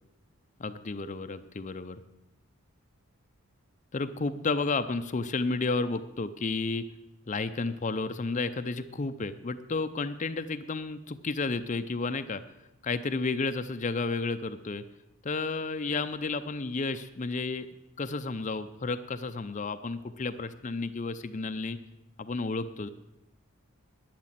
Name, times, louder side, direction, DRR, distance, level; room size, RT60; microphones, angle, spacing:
voice 1, 0.6-2.0 3.9-6.8 7.3-12.4 12.8-14.8 15.2-17.7 18.0-21.8 22.2-22.9, left 3 dB, 35° left, 10 dB, 0.5 m, -32 dB
12.0 x 9.4 x 7.5 m, 0.96 s
head